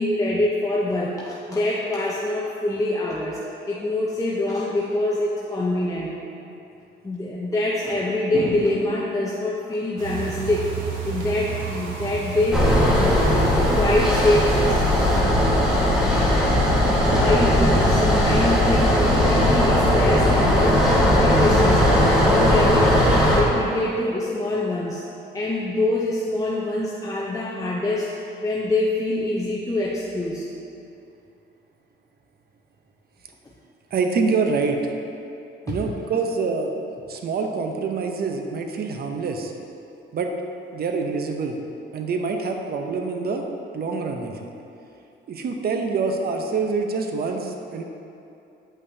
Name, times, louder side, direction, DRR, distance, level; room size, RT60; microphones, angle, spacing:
voice 1, 0.0-3.4 3.7-6.2 7.0-10.7 11.0-14.8 17.2-25.0 25.3-30.5 35.7-35.8, left 2 dB, 15° left, -5 dB, 0.7 m, -25 dB
sound 1, 10.0-15.2, right 6 dB, 90° right, 1.0 m, -32 dB
sound 2, 12.5-23.4, equal, 5° right, 1.5 m, -18 dB
voice 2, 33.9-34.9 35.7-36.7 37.1-39.5 40.1-40.3 40.7-41.6 41.9-43.5 43.7-44.5 45.3-47.8, right 4 dB, 50° right, 4 dB, 0.7 m, -26 dB
8.4 x 5.5 x 2.7 m, 2.7 s
cardioid pair, 90°, 20 cm